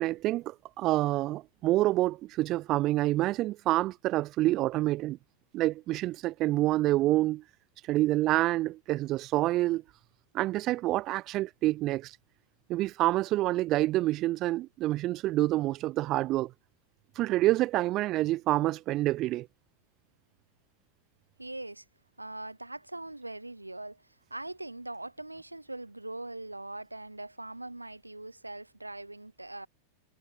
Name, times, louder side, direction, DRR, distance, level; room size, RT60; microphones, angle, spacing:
voice 1, 0.0-5.2 5.5-7.4 7.8-9.8 10.3-12.2 12.7-16.5 17.1-19.5, right 16 dB, 35° right, 1.5 m, -27 dB
voice 2, 21.4-21.8 22.2-29.7, right 2 dB, 85° right, 4.8 m, -41 dB
figure-of-eight pair, 90°, 0 cm